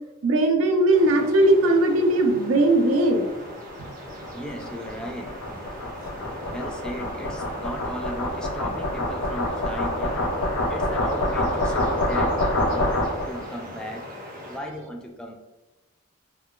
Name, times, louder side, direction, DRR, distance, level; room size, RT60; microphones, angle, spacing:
voice 1, 0.2-3.3, right 1 dB, 80° right, 4 dB, 0.5 m, -19 dB
sound 1, 0.9-14.6, equal, 45° right, 0.8 m, -40 dB
sound 2, 3.5-13.4, left 1 dB, 80° left, 0.6 m, -27 dB
voice 2, 4.2-5.4 5.9-12.4 12.6-14.0 14.5-15.3, equal, 5° left, 1 dB, 0.3 m, -36 dB
3.7 x 2.3 x 2.3 m, 1.1 s
head